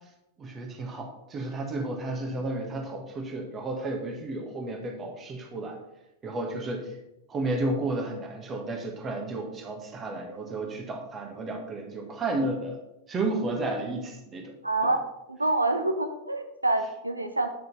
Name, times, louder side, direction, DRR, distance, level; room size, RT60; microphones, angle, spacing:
voice 1, 0.4-5.8 6.2-7.0 7.3-12.8 13.1-14.6 14.8-14.9, right 2 dB, 25° right, 2 dB, 1.7 m, -32 dB
voice 2, 14.6-15.0 15.3-17.5, right 2 dB, 85° right, 7 dB, 0.9 m, -26 dB
9.3 x 6.3 x 4.3 m, 0.87 s
figure-of-eight pair, 90°, 0 cm